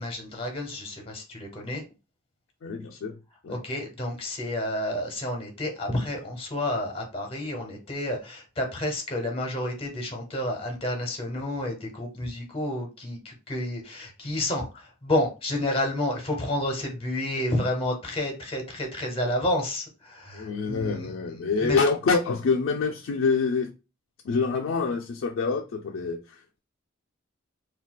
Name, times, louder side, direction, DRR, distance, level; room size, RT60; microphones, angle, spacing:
voice 1, 0.0-1.8 3.5-21.1 21.6-21.8, left 1 dB, 30° left, 2 dB, 0.8 m, -30 dB
voice 2, 2.6-3.1 3.4-3.6 20.3-23.7 24.2-26.6, left 4 dB, 85° left, 1 dB, 0.4 m, -26 dB
3.8 x 2.3 x 2.2 m, 0.30 s
head